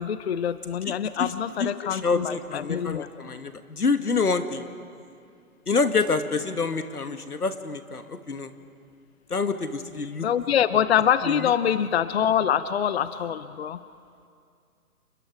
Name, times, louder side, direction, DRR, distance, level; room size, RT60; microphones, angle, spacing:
voice 1, 0.0-3.1 10.2-13.8, left 9 dB, 45° left, 14 dB, 0.6 m, -25 dB
voice 2, 1.6-4.7 5.7-8.5 9.3-10.3 11.2-11.5, left 4 dB, 85° left, 9 dB, 1.7 m, -27 dB
29.0 x 21.5 x 4.9 m, 2.3 s
figure-of-eight pair, 140°, 44 cm